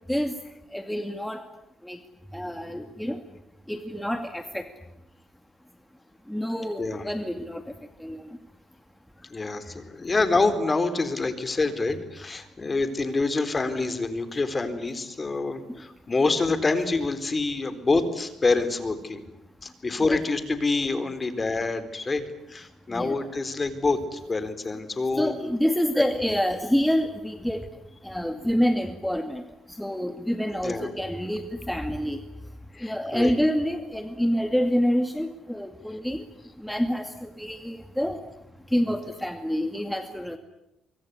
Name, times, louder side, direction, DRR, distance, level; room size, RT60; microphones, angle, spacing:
voice 1, 0.7-1.4 1.8-2.0 2.3-3.2 3.7-4.6 6.3-7.6 8.0-8.2 20.0-20.2 22.9-23.2 25.2-27.6 28.0-29.4 29.7-32.2 32.8-36.2 36.6-38.2 38.7-40.4, equal, 5° left, 7 dB, 2.2 m, -27 dB
voice 2, 6.8-7.1 9.3-19.2 19.6-25.3 30.6-30.9 32.7-33.3, left 3 dB, 30° left, 11 dB, 4.0 m, -26 dB
24.5 x 24.0 x 9.8 m, 0.87 s
cardioid pair, 90°, 0 cm